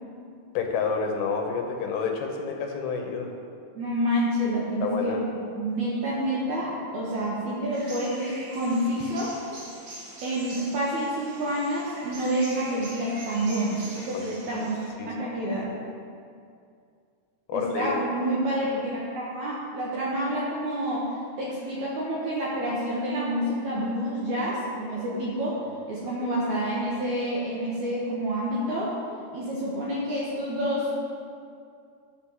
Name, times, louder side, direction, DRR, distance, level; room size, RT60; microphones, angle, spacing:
voice 1, 0.5-3.3 4.8-5.2 14.1-14.3 15.0-15.1 17.5-17.9 24.9-25.0, left 5 dB, 75° left, 2 dB, 2.7 m, -29 dB
voice 2, 3.7-5.2 5.6-9.3 10.2-14.7 15.0-15.7 17.5-21.1 21.4-25.6 25.9-28.9 29.3-30.9, right 1 dB, 65° right, -6 dB, 2.0 m, -28 dB
sound 1, 7.7-14.9, right 1 dB, 45° right, 3.1 m, -43 dB
11.5 x 4.1 x 7.2 m, 2.3 s
omnidirectional pair, 4.7 m